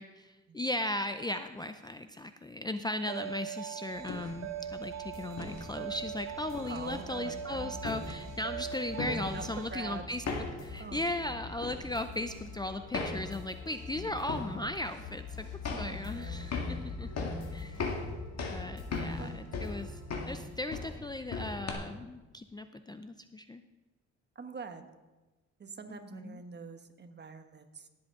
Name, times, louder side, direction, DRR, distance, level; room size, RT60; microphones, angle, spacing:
voice 1, 0.0-10.2 10.6-15.5 15.8-17.3 17.5-17.8 18.5-20.0 20.3-23.6 25.9-26.4, left 1 dB, 15° left, 9 dB, 0.4 m, -37 dB
sound 1, 3.0-9.7, right 10 dB, 60° right, 1.0 m, -41 dB
sound 2, 4.0-21.7, left 3 dB, 55° left, 2.0 m, -40 dB
sound 3, 5.1-20.1, left 3 dB, 80° left, 2.5 m, -51 dB
voice 2, 6.7-7.7 8.7-10.1 10.8-11.5 13.9-14.2 15.7-16.5 19.2-19.4 24.3-24.8 25.6-27.9, right 5 dB, 35° right, 8 dB, 1.2 m, -45 dB
17.5 x 7.8 x 3.7 m, 1.2 s
cardioid pair, 90°, 30 cm